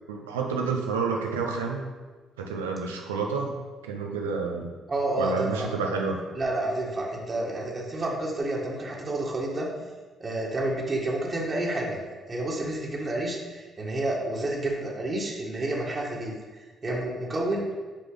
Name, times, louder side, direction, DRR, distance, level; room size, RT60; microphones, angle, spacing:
voice 1, 0.1-1.8 2.4-3.5 3.8-4.7 5.2-6.2, right 4 dB, 85° right, 2 dB, 0.7 m, -29 dB
voice 2, 4.9-5.7 6.3-9.7 10.2-12.0 12.3-17.7, right 1 dB, 40° right, -3 dB, 1.7 m, -29 dB
6.8 x 5.0 x 3.9 m, 1.3 s
hypercardioid pair, 50°, 0 cm